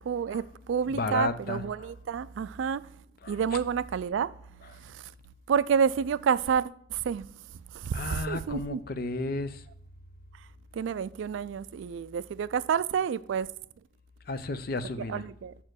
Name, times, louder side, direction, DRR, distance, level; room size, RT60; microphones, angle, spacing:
voice 1, 0.1-2.9 3.3-4.3 4.8-5.0 5.5-7.3 7.7-8.8 10.7-13.5 15.1-15.5, right 7 dB, 70° right, 0.3 m, -29 dB
voice 2, 0.9-1.9 3.2-3.4 7.9-9.6 14.3-15.2, left 3 dB, 50° left, 0.5 m, -33 dB
5.7 x 4.4 x 6.3 m
head